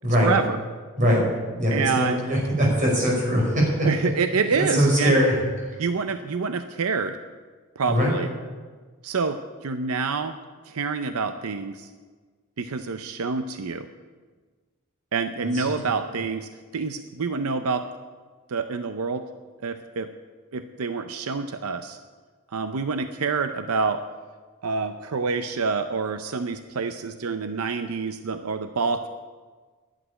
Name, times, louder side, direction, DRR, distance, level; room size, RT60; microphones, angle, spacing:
voice 1, 0.2-0.6 1.7-2.2 3.8-5.2 5.8-7.2 7.8-8.3 9.0-10.3 10.7-11.9 12.6-13.9 15.1-17.8 18.5-19.2 19.6-20.1 20.5-22.0 22.5-24.0 24.6-29.1, right 5 dB, 85° right, 9 dB, 0.6 m, -27 dB
voice 2, 1.0-1.3 1.6-3.9 4.3-5.3 5.6-5.8 7.9-8.1 15.5-16.2, equal, 35° right, -4 dB, 5.5 m, -22 dB
11.0 x 8.5 x 9.8 m, 1.5 s
head